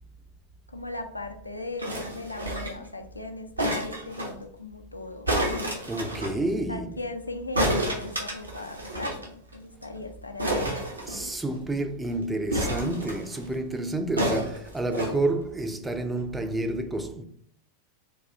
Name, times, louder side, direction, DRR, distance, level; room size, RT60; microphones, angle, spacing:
voice 1, 0.7-5.3 6.7-10.7, left 2 dB, 85° left, 0.3 m, -38 dB
sound 1, 1.8-2.9 3.6-4.3 5.3-6.4 7.6-9.3 9.5-9.6 9.8-10.0 10.4-11.6 12.5-13.4 14.2-15.1 15.9-16.0, right 1 dB, 80° right, 0.6 m, -29 dB
voice 2, 5.9-7.0 11.1-17.2, right 2 dB, 10° right, 0.3 m, -29 dB
3.1 x 2.3 x 2.6 m
figure-of-eight pair, 90°, 0 cm